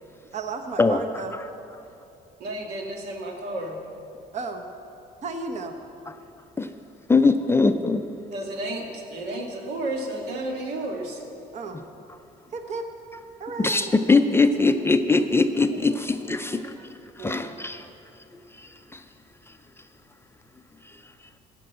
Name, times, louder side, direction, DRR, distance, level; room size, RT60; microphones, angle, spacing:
voice 1, 0.3-1.4 4.3-4.7 5.2-5.7 11.5-11.8 12.5-12.8 13.4-14.2, right 4 dB, 45° right, 5 dB, 1.0 m, -33 dB
voice 2, 2.4-3.8 8.3-11.2 15.9-16.0 16.3-16.6 17.2-17.4, right 1 dB, 80° right, 1 dB, 1.8 m, -32 dB
voice 3, 7.1-8.1 13.6-16.8 17.2-17.9 18.6-19.0, left 3 dB, 15° left, 8 dB, 0.4 m, -21 dB
13.5 x 5.3 x 7.8 m, 2.7 s
cardioid pair, 110°, 17 cm